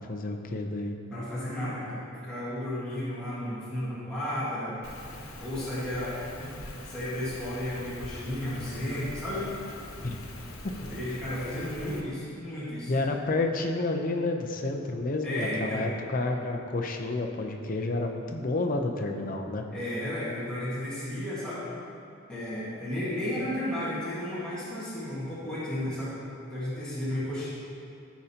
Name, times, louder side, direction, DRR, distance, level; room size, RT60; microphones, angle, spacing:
voice 1, 0.1-1.0 10.0-10.2 10.6-10.7 12.9-19.6, left 2 dB, 40° left, 3 dB, 0.6 m, -30 dB
voice 2, 1.1-4.8 5.4-9.5 10.8-12.9 15.2-15.9 19.7-21.7 22.3-26.1 26.5-27.5, left 1 dB, 5° left, -12 dB, 1.7 m, -33 dB
Rain, 4.8-12.0, left 1 dB, 85° left, 1.1 m, -43 dB
15.0 x 5.1 x 2.9 m, 2.6 s
head